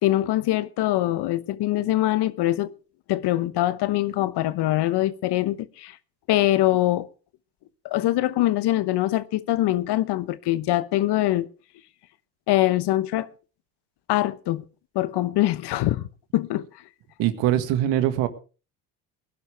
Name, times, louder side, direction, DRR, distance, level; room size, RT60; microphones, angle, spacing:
voice 1, 0.0-2.7 3.1-6.0 6.3-7.1 7.8-11.5 12.5-13.3 14.1-14.6 14.9-16.1 16.3-16.7, left 15 dB, 60° left, 1.1 m, -23 dB
voice 2, 17.2-18.3, right 12 dB, 70° right, 1.9 m, -22 dB
20.0 x 11.5 x 3.4 m
hypercardioid pair, 65°, 45 cm